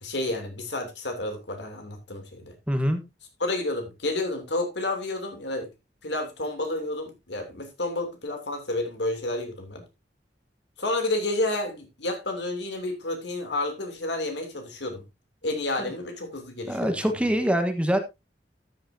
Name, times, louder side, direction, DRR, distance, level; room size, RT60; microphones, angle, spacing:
voice 1, 0.0-2.5 3.4-5.7 6.0-9.8 10.8-15.0 15.4-17.1, left 2 dB, 80° left, 3.0 m, -30 dB
voice 2, 2.7-3.0 16.7-18.0, equal, 5° right, 1.3 m, -24 dB
13.5 x 8.5 x 2.7 m
head